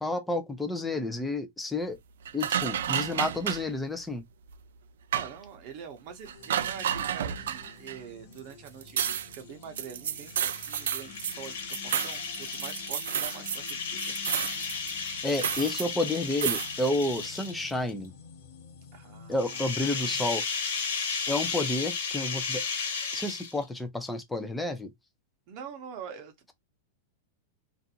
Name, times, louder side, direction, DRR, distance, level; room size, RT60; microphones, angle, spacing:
voice 1, 0.0-2.0 2.3-4.2 15.2-18.1 19.3-20.4 21.3-22.7 23.1-24.9, left 2 dB, 5° left, 0.5 m, -30 dB
sound 1, 2.2-3.7 4.5-4.6 5.1-5.4 6.3-8.0 8.4-8.5 8.7-13.7 14.0-15.9 16.4-16.7, right 9 dB, 85° right, 0.3 m, -31 dB
voice 2, 5.1-14.1 18.9-19.6 25.5-26.5, right 7 dB, 40° right, 0.7 m, -45 dB
sound 2, 6.2-20.2, left 5 dB, 60° left, 1.1 m, -51 dB
sound 3, 10.1-17.9 19.3-23.8, left 5 dB, 75° left, 1.2 m, -34 dB
2.5 x 2.5 x 2.7 m
supercardioid pair, 155°, 0 cm